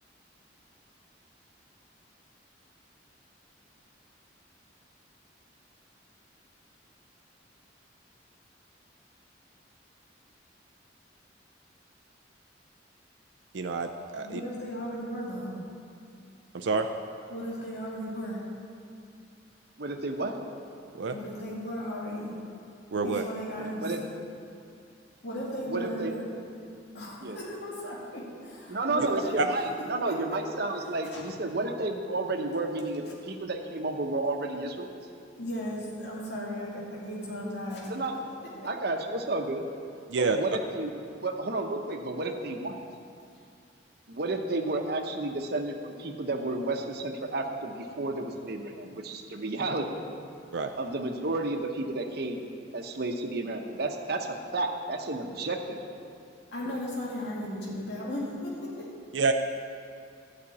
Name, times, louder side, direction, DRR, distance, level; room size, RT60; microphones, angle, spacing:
voice 1, 13.5-14.4 16.5-16.9 21.0-21.2 22.9-23.3 29.4-29.5 40.1-40.4 50.5-50.7 59.1-59.3, right 4 dB, 75° right, 5 dB, 0.5 m, -27 dB
voice 2, 14.2-15.6 17.3-18.5 21.1-22.4 23.0-23.9 25.2-26.2 26.9-29.4 30.1-30.4 31.1-31.2 35.4-37.9 38.4-38.7 56.5-58.9, equal, 60° left, -5 dB, 2.3 m, -36 dB
voice 3, 19.8-20.3 23.6-24.0 25.7-26.1 27.2-27.4 28.7-34.9 37.9-38.2 38.6-39.6 40.2-40.9 41.2-42.8 44.1-50.0 50.8-52.4 52.7-55.8, right 2 dB, 55° right, 4 dB, 0.9 m, -31 dB
11.5 x 5.2 x 8.5 m, 2.5 s
head